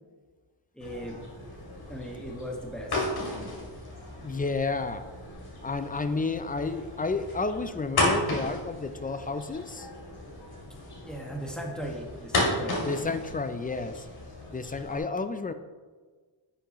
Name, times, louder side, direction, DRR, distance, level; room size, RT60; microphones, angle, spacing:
voice 1, 0.7-1.2 1.9-3.0 3.3-3.5 11.0-12.9, equal, ahead, -1 dB, 1.5 m, -38 dB
sound 1, 0.8-15.0, left 2 dB, 55° left, 2.6 m, -34 dB
voice 2, 4.2-5.1 5.6-9.9 12.9-14.0 14.5-15.5, left 3 dB, 20° left, 10 dB, 0.3 m, -31 dB
10.0 x 7.0 x 3.0 m, 1.4 s
cardioid pair, 115°, 45 cm